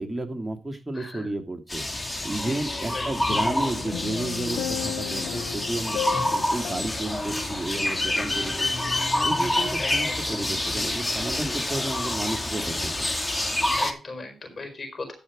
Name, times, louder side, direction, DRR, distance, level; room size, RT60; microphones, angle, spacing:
voice 1, 0.0-1.8 2.2-6.0 6.3-8.7 9.2-12.9, right 2 dB, 15° right, 3 dB, 2.7 m, -32 dB
voice 2, 0.9-1.3 2.2-3.1 8.0-9.0 9.8-10.2 13.7-15.1, left 2 dB, 45° left, 6 dB, 4.5 m, -38 dB
sound 1, 1.7-13.9, left 1 dB, 20° left, 2.4 m, -27 dB
sound 2, 3.3-8.7 9.1-9.2, left 12 dB, 85° left, 0.7 m, -36 dB
14.0 x 5.5 x 5.2 m, 0.35 s
supercardioid pair, 40°, 0 cm